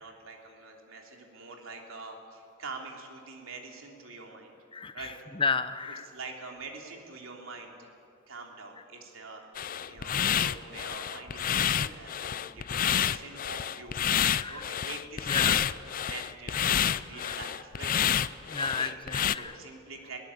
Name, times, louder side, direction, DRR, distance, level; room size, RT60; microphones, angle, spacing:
voice 1, 0.0-4.5 4.9-5.1 5.9-7.9 8.3-14.1 14.5-15.6 16.1-17.9 18.6-18.9 19.3-20.2, right 3 dB, 85° right, 1 dB, 3.3 m, -45 dB
voice 2, 4.7-6.1 12.9-13.1 14.4-14.7 15.3-15.6 17.1-17.4 18.5-19.5, left 4 dB, 25° left, 11 dB, 0.8 m, -33 dB
sound 1, 9.6-19.4, left 9 dB, 45° left, 0.5 m, -29 dB
22.0 x 18.0 x 8.6 m, 2.5 s
head